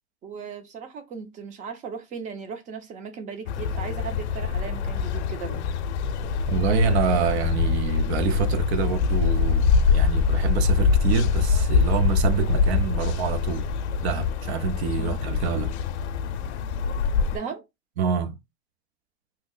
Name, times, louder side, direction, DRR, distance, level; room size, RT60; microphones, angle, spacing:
voice 1, 0.2-5.6 15.0-15.3 17.3-17.6, right 6 dB, 20° right, 0.5 m, -37 dB
sound 1, 3.5-17.4, left 5 dB, 70° left, 0.6 m, -24 dB
voice 2, 6.5-9.6 9.9-13.7 14.0-15.7 18.0-18.3, right 7 dB, 65° right, 0.7 m, -26 dB
2.9 x 2.0 x 3.7 m
supercardioid pair, 135°, 34 cm